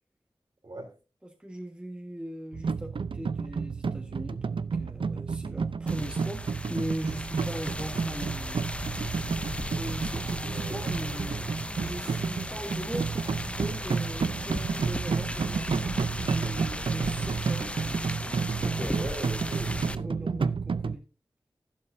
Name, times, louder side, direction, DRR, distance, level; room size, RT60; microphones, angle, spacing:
voice 1, 1.2-9.3 9.6-11.5 11.8-17.7 18.0-18.4 19.4-21.0, right 1 dB, 10° right, 1.5 m, -40 dB
sound 1, 2.5-21.0, right 5 dB, 70° right, 0.5 m, -31 dB
sound 2, 5.9-20.0, left 1 dB, 15° left, 0.6 m, -36 dB
voice 2, 10.4-10.9 18.5-20.4, right 2 dB, 50° right, 3.3 m, -40 dB
11.5 x 11.0 x 2.6 m
wide cardioid pair, 70°, 9 cm